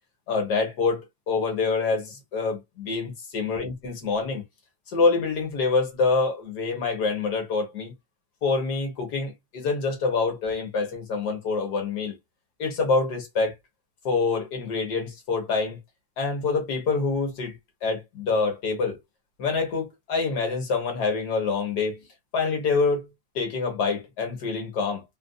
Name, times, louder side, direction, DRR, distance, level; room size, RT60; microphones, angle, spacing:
voice 1, 0.3-4.4 4.9-7.9 8.4-12.1 12.6-13.5 14.1-15.8 16.2-19.0 19.4-22.1 22.3-23.1 23.4-25.0, left 4 dB, 65° left, 1.7 m, -26 dB
3.5 x 2.6 x 2.2 m
omnidirectional pair, 1.9 m